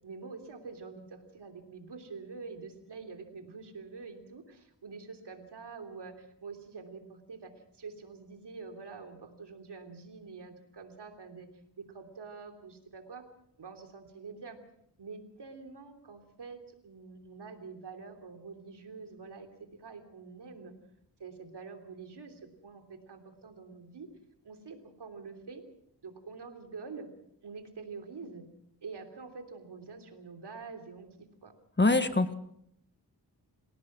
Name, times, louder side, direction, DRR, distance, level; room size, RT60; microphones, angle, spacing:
voice 1, 0.0-11.5 11.7-13.2 13.6-14.6 15.0-20.7 21.2-24.1 24.4-25.6 26.0-27.1 27.4-28.4 28.8-31.1 31.4-31.5, right 4 dB, 75° right, 5 dB, 3.2 m, -46 dB
voice 2, 31.8-32.3, left 2 dB, 25° left, 10 dB, 1.6 m, -24 dB
27.5 x 17.0 x 6.2 m, 0.73 s
wide cardioid pair, 80°, 41 cm